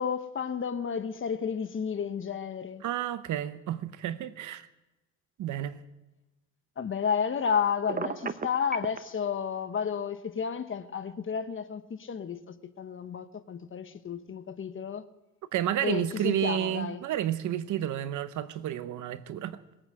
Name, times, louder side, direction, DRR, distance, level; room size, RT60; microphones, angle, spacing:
voice 1, 0.0-2.8 6.8-15.0 15.8-17.0, left 7 dB, 40° left, 1.1 m, -32 dB
voice 2, 2.8-4.7 5.4-5.8 15.5-19.6, right 11 dB, 75° right, 0.9 m, -31 dB
Telephone, 7.9-9.0, right 5 dB, 30° right, 0.9 m, -32 dB
20.5 x 8.8 x 7.7 m
cardioid pair, 90°, 30 cm